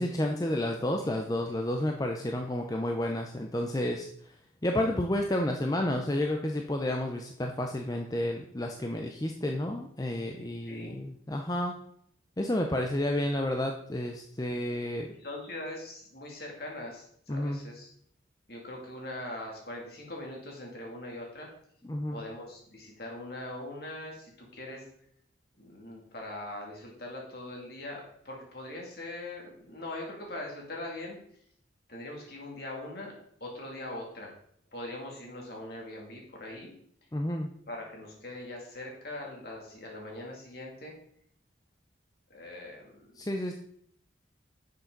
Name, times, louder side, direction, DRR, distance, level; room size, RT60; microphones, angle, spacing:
voice 1, 0.0-4.1 4.6-11.7 12.4-15.2 17.3-17.6 21.9-22.2 37.1-37.5 43.2-43.5, left 1 dB, 20° left, 3 dB, 0.6 m, -31 dB
voice 2, 10.6-11.0 15.2-17.9 18.5-21.5 22.1-24.8 25.6-31.2 31.9-33.1 33.4-34.3 34.7-36.8 37.7-40.9 42.3-43.2, left 1 dB, 55° left, -1 dB, 2.7 m, -41 dB
10.5 x 6.7 x 4.0 m, 0.66 s
head